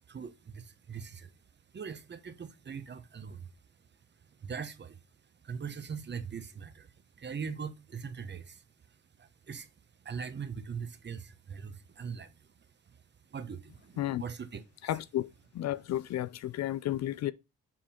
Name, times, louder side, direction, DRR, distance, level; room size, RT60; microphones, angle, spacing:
voice 1, 0.1-1.3 1.7-3.5 4.2-5.0 5.4-9.7 10.0-14.6, right 6 dB, 35° right, 1.1 m, -42 dB
voice 2, 14.8-15.3 15.5-17.3, left 13 dB, 60° left, 0.5 m, -32 dB
7.5 x 4.1 x 4.3 m
cardioid pair, 90°, 30 cm